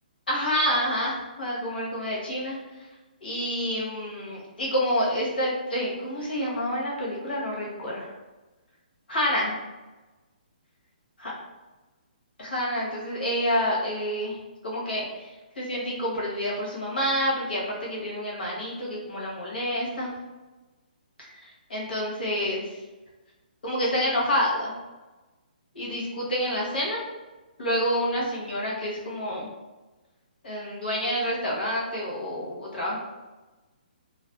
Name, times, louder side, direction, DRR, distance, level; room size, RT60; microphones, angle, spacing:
voice 1, 0.3-2.6 3.2-8.1 9.1-9.6 11.2-11.3 12.4-14.4 14.6-15.3 15.6-20.1 21.2-22.7 23.6-24.7 25.7-27.0 27.6-29.5 30.4-33.0, equal, 80° left, -4 dB, 1.0 m, -28 dB
2.4 x 2.2 x 2.3 m, 1.2 s
hypercardioid pair, 165°, 5 cm